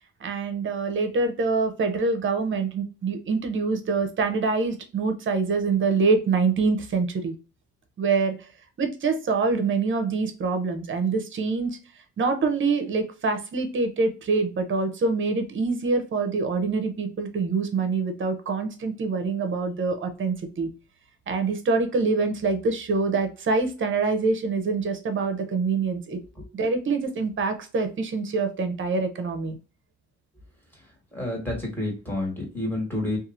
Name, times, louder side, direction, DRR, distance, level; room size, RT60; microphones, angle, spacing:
voice 1, 0.2-7.3 8.0-8.3 8.8-11.8 12.2-20.7 21.3-26.2 26.5-29.6, right 4 dB, 40° right, 7 dB, 0.7 m, -25 dB
voice 2, 31.1-33.2, left 1 dB, 5° left, -2 dB, 1.4 m, -29 dB
2.8 x 2.4 x 2.5 m, 0.34 s
cardioid pair, 90°, 30 cm